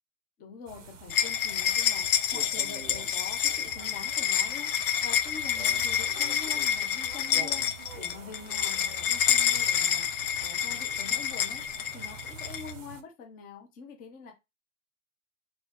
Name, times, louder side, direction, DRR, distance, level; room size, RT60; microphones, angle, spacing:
voice 1, 0.4-14.3, left 6 dB, 20° left, 2 dB, 1.0 m, -45 dB
sound 1, 0.7-13.0, right 5 dB, 70° right, 0.7 m, -46 dB
sound 2, 1.1-12.7, left 9 dB, 45° left, 0.5 m, -28 dB
2.9 x 2.8 x 3.3 m, 0.23 s
figure-of-eight pair, 105°, 39 cm